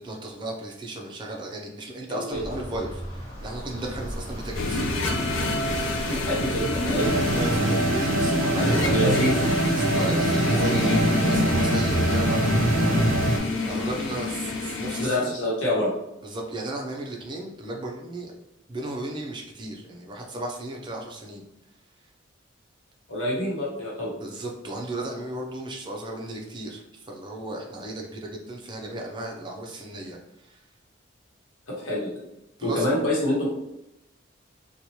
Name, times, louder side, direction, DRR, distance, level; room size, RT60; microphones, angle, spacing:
voice 1, 0.0-4.8 6.9-8.9 9.8-12.7 13.6-15.3 16.2-18.3 18.7-21.4 24.1-30.6 32.6-32.9, right 1 dB, 25° right, 0 dB, 0.5 m, -35 dB
sound 1, 2.3-7.6, equal, 40° left, 1.4 m, -36 dB
sound 2, 4.5-15.1, left 2 dB, 70° left, 0.4 m, -28 dB
voice 2, 6.1-7.1 8.6-9.3 15.0-15.9 23.1-24.1 31.7-32.2 32.6-33.5, left 1 dB, 85° left, -5 dB, 1.0 m, -26 dB
sound 3, 7.0-13.4, right 1 dB, 85° right, 0.5 m, -23 dB
2.9 x 2.2 x 2.8 m, 0.87 s
head